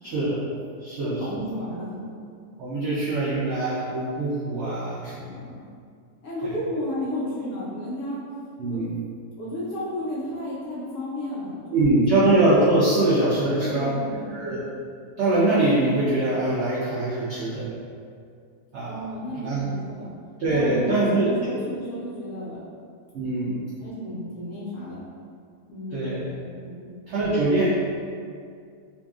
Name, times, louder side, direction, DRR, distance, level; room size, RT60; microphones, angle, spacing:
voice 1, 0.0-0.4 0.8-1.1 2.6-5.3 8.6-8.9 11.7-13.9 14.3-14.6 15.2-17.7 18.7-19.0 19.4-19.6 20.4-21.3 23.1-23.6 25.9-26.3 27.1-27.7, right 2 dB, 80° right, -9 dB, 0.6 m, -23 dB
voice 2, 1.0-2.0 5.2-5.6 6.2-8.2 8.7-8.8 9.4-11.8 13.6-14.5 18.9-20.1 20.4-22.6 23.8-25.0 25.7-26.3 26.6-26.9, equal, 65° left, -8 dB, 0.8 m, -33 dB
2.7 x 2.5 x 2.3 m, 2.3 s
omnidirectional pair, 1.7 m